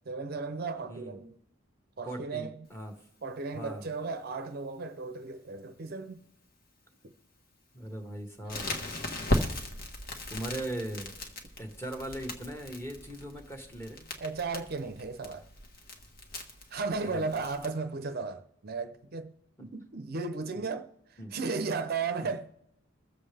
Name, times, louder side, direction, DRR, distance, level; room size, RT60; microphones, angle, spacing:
voice 1, 0.1-1.3 2.0-2.7 3.2-6.2 7.0-7.1 14.2-15.4 16.7-19.3 19.6-20.9 21.3-22.5, right 4 dB, 50° right, 0.6 m, -35 dB
voice 2, 2.0-3.0 3.5-3.9 7.7-8.7 10.3-11.1 11.6-14.0 17.0-17.3 19.6-19.7 21.2-21.4, right 1 dB, 10° left, 1.3 m, -39 dB
Crackle, 8.5-17.7, left 1 dB, 45° left, 1.4 m, -37 dB
22.5 x 7.5 x 3.3 m
head